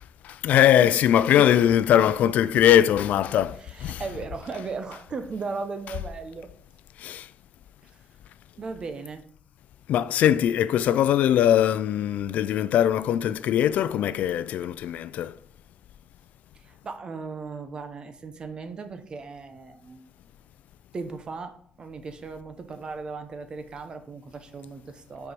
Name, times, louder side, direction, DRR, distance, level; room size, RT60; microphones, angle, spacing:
voice 1, 0.2-4.0 7.0-7.3 9.9-15.4, left 10 dB, 85° left, 0.3 m, -21 dB
voice 2, 3.7-6.5 7.8-7.9 8.6-9.2 16.5-20.0 20.9-25.3, right 4 dB, 35° right, 0.8 m, -37 dB
6.7 x 4.6 x 5.2 m
cardioid pair, 150°, 3 cm